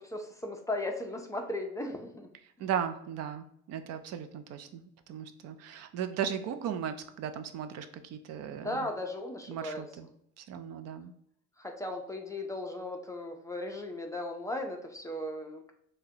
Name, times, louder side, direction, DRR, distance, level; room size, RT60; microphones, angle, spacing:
voice 1, 0.1-2.3 2.6-2.7 8.6-9.8 11.6-15.7, left 1 dB, 10° left, 3 dB, 0.4 m, -37 dB
voice 2, 2.6-8.9 9.5-10.1 10.4-11.1, right 8 dB, 60° right, 9 dB, 0.5 m, -37 dB
5.9 x 2.2 x 2.7 m, 0.71 s
cardioid pair, 130°, 29 cm